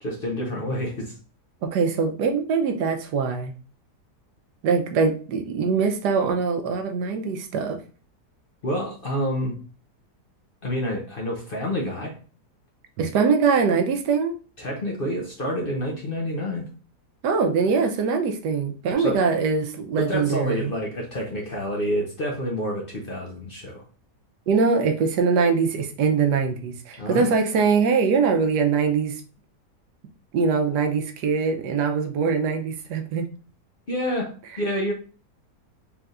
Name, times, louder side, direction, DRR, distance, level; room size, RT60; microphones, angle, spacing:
voice 1, 0.0-1.2 8.6-9.6 10.6-12.2 14.6-16.7 19.0-19.2 20.0-23.8 27.0-27.3 33.9-34.9, equal, 40° left, 0 dB, 0.8 m, -28 dB
voice 2, 1.6-3.5 4.6-7.8 13.0-14.3 17.2-20.7 24.5-29.1 30.3-33.3, right 5 dB, 80° right, 6 dB, 1.3 m, -22 dB
4.4 x 3.5 x 2.4 m, 0.37 s
omnidirectional pair, 1.8 m